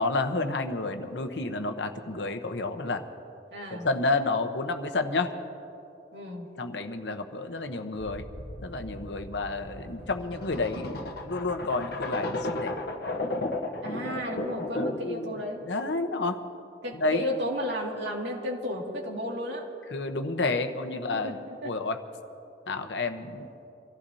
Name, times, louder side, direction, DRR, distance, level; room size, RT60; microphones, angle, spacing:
voice 1, 0.0-3.0 3.7-5.3 6.6-8.2 8.6-12.7 14.7-15.4 15.7-16.4 17.0-17.3 19.9-21.4 21.6-22.0 22.7-23.5, left 3 dB, 85° left, 6 dB, 1.0 m, -30 dB
voice 2, 3.5-3.9 6.1-6.5 13.8-15.6 16.8-19.7 21.1-21.7, left 1 dB, 80° right, -1 dB, 2.2 m, -33 dB
sound 1, 8.0-15.2, left 2 dB, 60° left, 1.0 m, -34 dB
26.0 x 15.0 x 2.8 m, 3.0 s
head